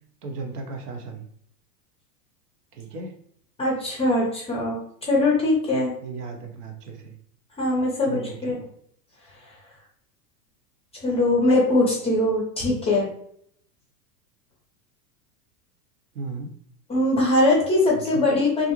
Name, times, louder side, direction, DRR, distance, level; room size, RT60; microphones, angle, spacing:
voice 1, 0.2-1.3 2.7-3.2 6.0-7.1 8.0-8.4 16.1-16.5 17.9-18.2, right 4 dB, 70° right, 4 dB, 0.8 m, -35 dB
voice 2, 3.6-5.9 7.6-8.6 11.0-13.1 16.9-18.7, left 2 dB, 15° left, -3 dB, 0.5 m, -21 dB
2.5 x 2.0 x 2.9 m, 0.66 s
hypercardioid pair, 125°, 48 cm